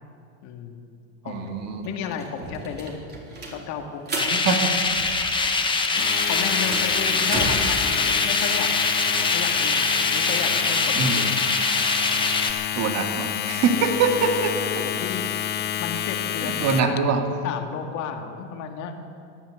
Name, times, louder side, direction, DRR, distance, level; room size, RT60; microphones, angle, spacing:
voice 1, 0.4-0.8 1.2-1.6 1.8-3.1 3.5-4.4 5.9-11.2 12.1-12.6 14.8-15.3 15.8-17.1 17.4-19.0, left 6 dB, 55° left, 4 dB, 2.0 m, -33 dB
voice 2, 1.2-1.9 4.4-4.7 11.0-11.4 12.8-14.8 16.4-17.2, right 4 dB, 50° right, 4 dB, 2.0 m, -24 dB
sound 1, 1.3-1.4 1.6-5.6 5.8-7.8, right 2 dB, 30° right, 3.6 m, -34 dB
sound 2, 4.2-12.5, left 3 dB, 15° left, 1.5 m, -23 dB
Domestic sounds home sounds, 5.8-17.0, left 12 dB, 30° left, 0.5 m, -29 dB
16.5 x 10.5 x 7.9 m, 2.4 s
hypercardioid pair, 95°, 35 cm